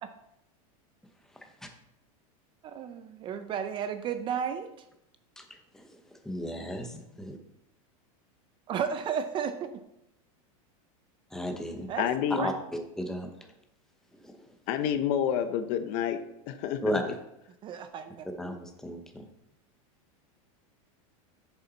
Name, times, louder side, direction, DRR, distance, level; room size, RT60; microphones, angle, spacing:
voice 1, 1.3-1.7 5.4-7.4 11.3-11.9 12.3-13.3 14.2-14.5 16.8-17.2 18.4-19.3, equal, 5° left, 4 dB, 0.9 m, -35 dB
voice 2, 2.6-4.7 8.7-9.7 11.9-12.5 17.6-18.3, right 7 dB, 30° right, 9 dB, 0.5 m, -33 dB
voice 3, 12.0-12.5 14.7-16.2 16.5-16.8, left 9 dB, 45° left, 10 dB, 0.7 m, -28 dB
8.0 x 7.0 x 4.0 m, 0.82 s
supercardioid pair, 150°, 18 cm